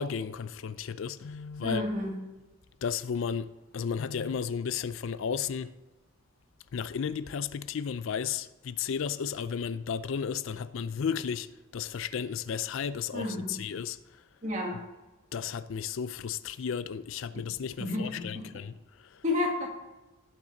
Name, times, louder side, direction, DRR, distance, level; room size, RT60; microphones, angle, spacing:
voice 1, 0.0-1.8 2.8-5.7 6.7-11.5 11.7-14.0 15.3-18.7 19.1-19.2, left 7 dB, 60° left, 0.4 m, -33 dB
voice 2, 1.6-2.3 13.1-13.7 14.4-14.8 17.3-17.4 17.8-18.6 19.2-19.7, left 2 dB, 35° right, 1.9 m, -32 dB
18.0 x 6.0 x 3.9 m
head